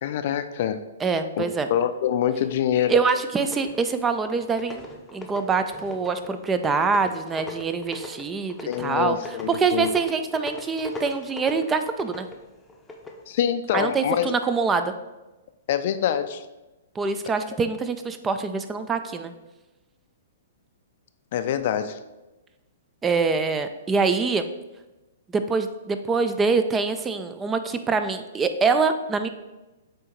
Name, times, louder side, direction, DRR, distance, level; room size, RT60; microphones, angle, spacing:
voice 1, 0.0-0.8 1.4-2.9 8.6-9.9 13.3-14.3 15.7-16.5 21.3-22.0, left 10 dB, 55° left, 10 dB, 0.4 m, -25 dB
voice 2, 1.0-1.7 2.9-4.9 5.1-9.2 9.5-12.3 13.7-14.9 17.0-19.3 23.0-24.5 25.3-29.3, right 4 dB, 15° right, 9 dB, 0.4 m, -24 dB
sound 1, 3.5-4.0 4.4-13.2, left 1 dB, 10° left, 0.8 m, -40 dB
7.8 x 2.7 x 4.5 m, 1.1 s
hypercardioid pair, 125°, 0 cm